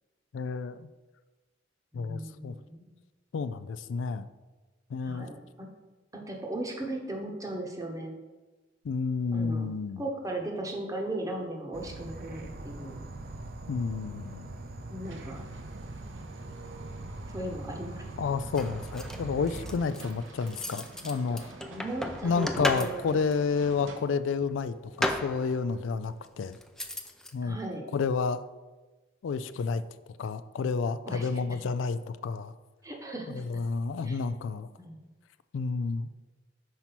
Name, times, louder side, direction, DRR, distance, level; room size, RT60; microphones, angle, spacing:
voice 1, 0.3-0.9 1.9-2.5 3.3-4.3 4.9-5.3 8.8-10.0 13.7-14.5 18.2-21.4 22.2-26.6 27.3-27.6 27.9-28.4 29.2-29.8 30.2-32.5 33.3-34.7 35.5-36.1, left 5 dB, 85° left, 12 dB, 0.3 m, -30 dB
voice 2, 1.9-2.9 5.0-5.7 6.1-8.1 9.3-13.0 14.9-15.5 17.3-18.1 21.7-23.2 27.4-27.9 31.1-31.6 32.8-33.4 34.0-34.2 34.8-35.0, right 1 dB, 20° right, 1 dB, 0.9 m, -37 dB
Insect / Frog, 11.7-19.8, right 2 dB, 55° right, 0.6 m, -42 dB
sound 1, 15.0-24.0, right 2 dB, 85° right, 0.9 m, -50 dB
sound 2, 18.6-23.4 24.4-25.8 26.4-27.3, left 1 dB, 5° left, 0.4 m, -35 dB
5.5 x 4.5 x 5.8 m, 1.2 s
head